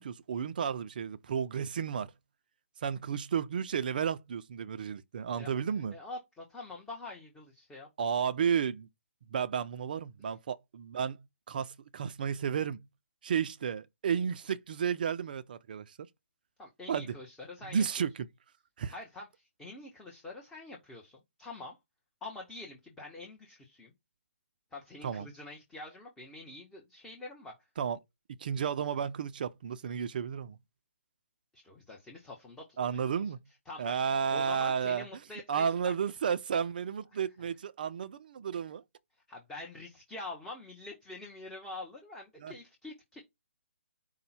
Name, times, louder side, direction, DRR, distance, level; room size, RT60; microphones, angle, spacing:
voice 1, 0.0-2.1 2.8-5.9 8.0-8.9 9.3-11.2 11.5-12.8 13.2-16.0 16.9-17.1 17.7-18.3 18.8-18.9 25.0-25.3 27.8-28.0 28.4-30.6 32.8-33.4 33.8-35.1 35.5-38.8 42.4-42.5, right 7 dB, 40° right, 0.4 m, -32 dB
voice 2, 5.4-7.9 10.2-10.3 16.6-18.1 18.9-21.8 22.2-23.9 24.7-27.5 31.5-33.2 33.7-35.9 37.1-37.5 39.3-43.2, left 2 dB, 5° left, 0.8 m, -46 dB
5.2 x 2.1 x 4.2 m
figure-of-eight pair, 140°, 7 cm